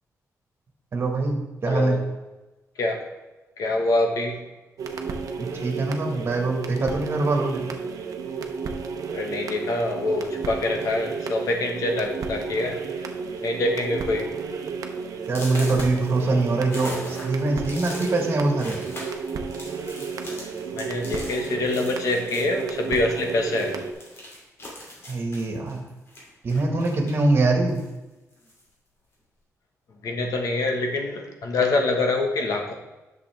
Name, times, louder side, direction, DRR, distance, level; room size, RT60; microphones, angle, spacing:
voice 1, 0.9-2.0 5.4-7.7 15.3-18.8 25.1-25.8 26.4-27.8, right 2 dB, 40° right, 2 dB, 1.7 m, -23 dB
voice 2, 1.6-2.0 2.8-3.0 3.6-4.4 9.1-12.8 13.4-14.3 20.7-23.8 30.0-32.7, left 2 dB, 75° left, 2 dB, 1.5 m, -25 dB
sound 1, 4.8-23.9, right 5 dB, 75° right, 0.8 m, -32 dB
sound 2, 10.7-11.1 11.9-12.0 12.4-12.6 12.9-13.4 13.8-13.9 14.4-14.5 15.2-23.3 23.6-27.3 27.7-28.7, left 1 dB, 45° left, 2.9 m, -41 dB
10.5 x 6.6 x 3.5 m, 1.1 s
wide cardioid pair, 140°, 6 cm